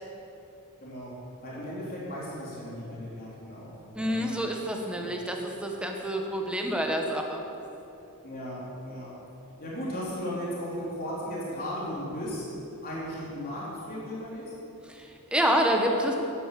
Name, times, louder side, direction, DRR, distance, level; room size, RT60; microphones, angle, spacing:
voice 1, 0.8-1.1 1.4-4.4 5.0-5.1 8.2-9.1 9.6-12.4 12.8-14.5, equal, 45° left, -7 dB, 3.6 m, -36 dB
voice 2, 4.0-7.4 14.9-16.2, equal, 5° right, 2 dB, 1.2 m, -28 dB
11.0 x 10.0 x 7.6 m, 2.9 s
head